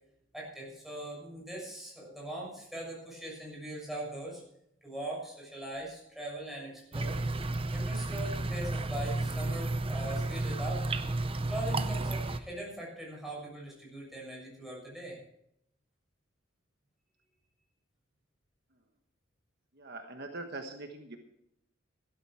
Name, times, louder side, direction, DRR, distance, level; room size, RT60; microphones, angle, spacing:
voice 1, 0.3-4.4 4.8-7.2 7.7-10.8 11.5-15.2, right 1 dB, ahead, -3 dB, 6.7 m, -41 dB
sound 1, 6.9-12.4, right 2 dB, 30° right, 0.7 m, -32 dB
voice 2, 19.7-21.2, right 2 dB, 55° right, 4 dB, 1.4 m, -42 dB
16.0 x 12.5 x 4.7 m, 0.77 s
head